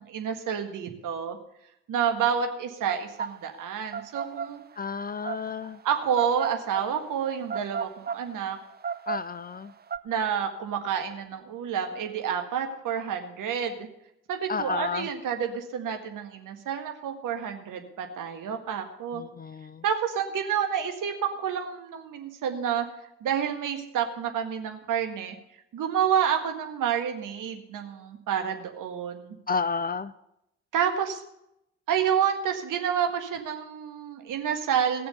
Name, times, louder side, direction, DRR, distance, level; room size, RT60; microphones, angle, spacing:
voice 1, 0.0-1.4 1.9-4.6 5.2-5.3 5.8-8.6 10.0-13.9 14.3-19.2 19.8-22.9 23.2-25.4 25.7-29.4 30.7-31.2 31.9-35.1, right 8 dB, 55° right, 5 dB, 1.7 m, -29 dB
sound 1, 2.9-10.0, right 6 dB, 25° right, 0.7 m, -34 dB
voice 2, 4.8-5.8 9.1-9.7 14.5-15.1 19.1-19.8 29.5-30.1, left 5 dB, 25° left, 14 dB, 0.5 m, -31 dB
18.0 x 6.8 x 6.7 m, 0.81 s
figure-of-eight pair, 40°, 38 cm